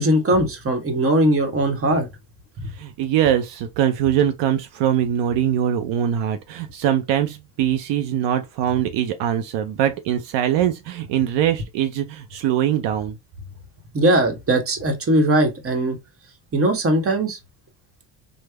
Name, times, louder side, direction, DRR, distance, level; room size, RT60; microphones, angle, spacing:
voice 1, 0.0-2.1 2.6-2.7 13.9-16.0 16.5-17.4, right 1 dB, 30° right, 1.0 m, -19 dB
voice 2, 2.7-13.2, right 10 dB, 70° right, 0.6 m, -22 dB
3.3 x 2.1 x 3.2 m
supercardioid pair, 85°, 44 cm